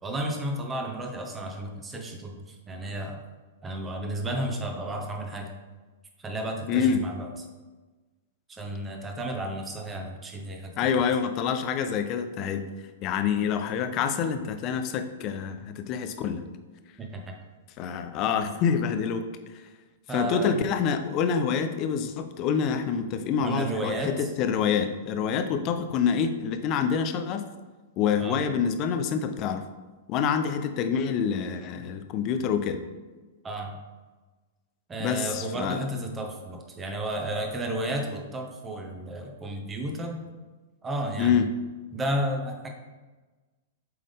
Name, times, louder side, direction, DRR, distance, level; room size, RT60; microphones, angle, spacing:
voice 1, 0.0-3.2 3.6-5.5 6.2-7.3 8.5-11.0 17.0-17.4 20.1-20.6 23.4-24.3 28.2-28.4 33.4-33.8 34.9-40.2 40.8-41.4 41.9-42.7, right 1 dB, 15° right, 2 dB, 1.1 m, -32 dB
voice 2, 6.7-7.1 10.8-12.7 13.0-16.4 17.8-19.3 20.1-27.4 28.0-29.6 30.1-32.8 35.0-35.9 41.2-41.5, left 7 dB, 40° left, 8 dB, 0.6 m, -26 dB
7.7 x 3.7 x 3.5 m, 1.3 s
figure-of-eight pair, 105°, 0 cm